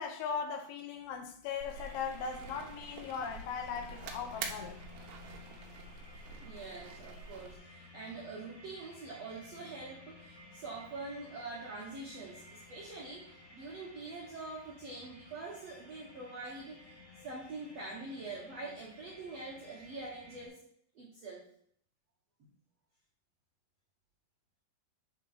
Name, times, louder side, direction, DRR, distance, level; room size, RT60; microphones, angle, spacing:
voice 1, 0.0-4.8, left 6 dB, 80° left, 2.6 m, -38 dB
sound 1, 1.6-7.6, right 4 dB, 85° right, 3.1 m, -46 dB
sound 2, 1.7-20.5, left 2 dB, 45° left, 2.9 m, -55 dB
voice 2, 6.4-20.6 20.9-21.5 22.4-22.5, right 3 dB, 70° right, 1.5 m, -45 dB
8.8 x 3.7 x 5.5 m
omnidirectional pair, 4.6 m